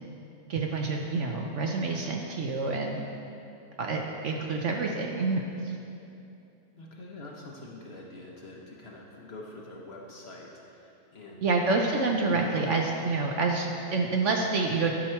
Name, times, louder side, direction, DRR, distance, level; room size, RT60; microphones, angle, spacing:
voice 1, 0.5-3.0 3.8-5.8 11.4-14.9, right 3 dB, 60° right, 1 dB, 0.9 m, -28 dB
voice 2, 6.8-11.8 12.3-12.7, left 2 dB, 45° left, -2 dB, 1.0 m, -45 dB
11.5 x 6.1 x 4.4 m, 2.7 s
omnidirectional pair, 1.6 m